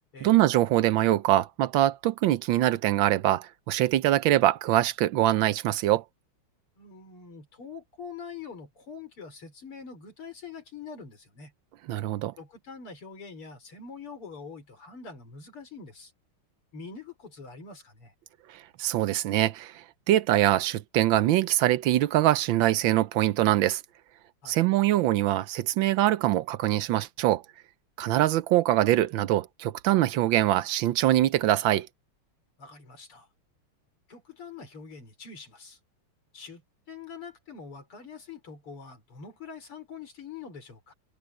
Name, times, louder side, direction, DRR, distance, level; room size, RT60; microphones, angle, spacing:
voice 1, 0.2-6.0 11.9-12.3 18.8-19.7 20.1-23.8 24.5-27.4 28.0-31.9, right 14 dB, 75° right, 1.3 m, -23 dB
voice 2, 6.8-11.5 12.4-16.1 16.7-18.1 24.4-24.6 32.6-33.3 34.1-35.8 36.3-36.6 36.9-40.9, left 5 dB, 80° left, 5.7 m, -44 dB
omnidirectional pair, 2.4 m